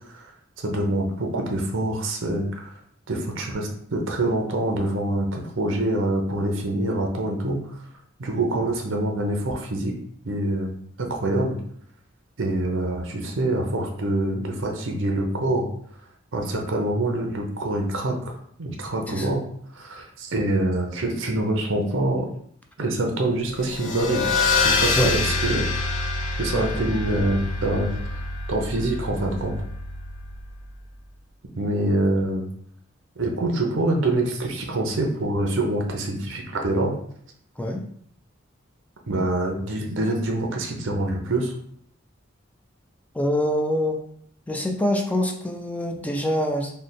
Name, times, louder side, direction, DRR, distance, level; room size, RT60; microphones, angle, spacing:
voice 1, 0.6-2.7 3.1-7.6 8.2-9.9 10.2-10.7 11.0-11.6 12.4-15.7 16.3-19.4 19.7-22.3 22.8-24.3 24.6-25.7 26.4-28.2 28.5-29.6 31.6-32.5 33.2-36.9 39.1-41.5, right 1 dB, 70° right, 2 dB, 0.7 m, -25 dB
sound 1, 23.5-30.6, left 3 dB, 80° left, 0.6 m, -26 dB
voice 2, 43.1-44.0 44.5-46.7, left 1 dB, 10° left, 2 dB, 0.4 m, -25 dB
3.3 x 2.1 x 4.0 m, 0.66 s
head